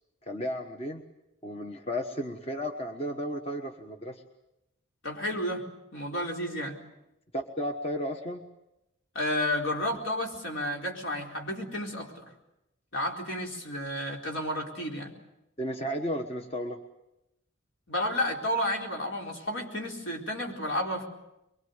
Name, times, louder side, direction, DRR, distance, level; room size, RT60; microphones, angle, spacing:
voice 1, 0.2-1.0 1.4-4.2 7.3-8.5 15.6-16.8, equal, 30° left, 4 dB, 1.3 m, -33 dB
voice 2, 5.0-5.6 5.9-6.8 9.1-12.3 12.9-15.1 17.9-21.1, left 1 dB, 70° left, 0 dB, 4.3 m, -31 dB
23.0 x 23.0 x 8.1 m, 0.90 s
head